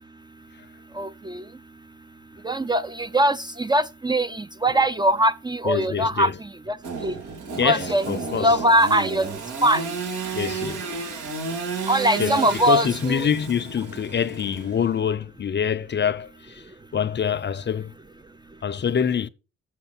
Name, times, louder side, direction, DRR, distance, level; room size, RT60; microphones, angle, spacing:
voice 1, 0.9-1.5 2.4-7.1 7.6-10.0 11.9-13.2, right 1 dB, 15° right, 0.5 m, -22 dB
voice 2, 5.6-6.4 7.6-8.6 10.3-10.8 12.2-16.7 16.9-17.9 18.6-19.3, left 7 dB, 35° left, 0.6 m, -25 dB
Engine / Sawing, 6.8-15.1, right 5 dB, 80° right, 2.6 m, -32 dB
7.6 x 6.7 x 5.9 m
cardioid pair, 90°, 30 cm